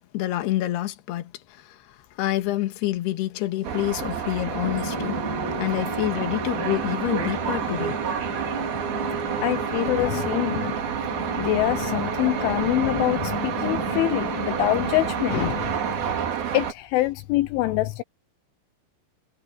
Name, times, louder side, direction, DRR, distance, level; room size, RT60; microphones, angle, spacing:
voice 1, 0.0-5.2 5.6-8.0 8.3-8.4 10.0-10.3 10.5-10.8 12.2-12.4, left 15 dB, 65° left, 3.4 m, -28 dB
sound 1, 3.6-16.7, right 8 dB, 55° right, 4.0 m, -29 dB
sound 2, 4.6-15.9, left 1 dB, 15° left, 1.0 m, -34 dB
voice 2, 9.4-10.7 11.3-15.7 16.5-18.0, left 17 dB, 80° left, 3.3 m, -25 dB
omnidirectional pair, 5.6 m